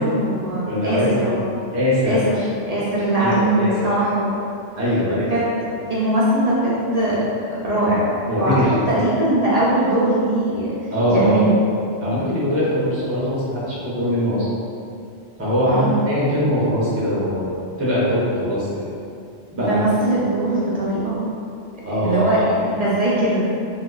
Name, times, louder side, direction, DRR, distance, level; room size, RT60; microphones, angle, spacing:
voice 1, 0.0-1.5 2.1-2.3 2.7-4.3 5.3-5.4 5.9-8.1 8.4-8.6 8.9-10.7 11.1-11.5 15.6-15.9 19.6-21.3 22.0-23.5, right 1 dB, 70° right, -8 dB, 0.3 m, -21 dB
voice 2, 0.7-1.4 1.7-2.2 3.2-3.9 4.8-5.3 8.3-9.0 10.9-11.5 12.0-14.5 15.4-18.8 19.5-19.8 21.8-22.5, equal, 15° right, -9 dB, 0.6 m, -21 dB
3.7 x 2.5 x 2.3 m, 2.5 s
omnidirectional pair, 1.2 m